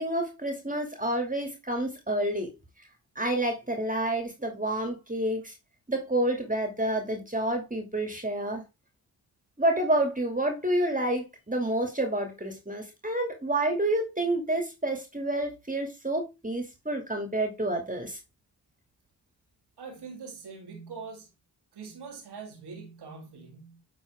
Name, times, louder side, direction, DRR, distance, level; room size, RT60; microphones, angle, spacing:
voice 1, 0.0-2.5 3.2-5.5 5.9-8.6 9.6-18.2, right 1 dB, 20° right, 2.5 m, -29 dB
voice 2, 19.8-21.3 21.8-23.8, right 5 dB, 85° right, 2.1 m, -43 dB
9.4 x 3.9 x 3.5 m
cardioid pair, 40°, 39 cm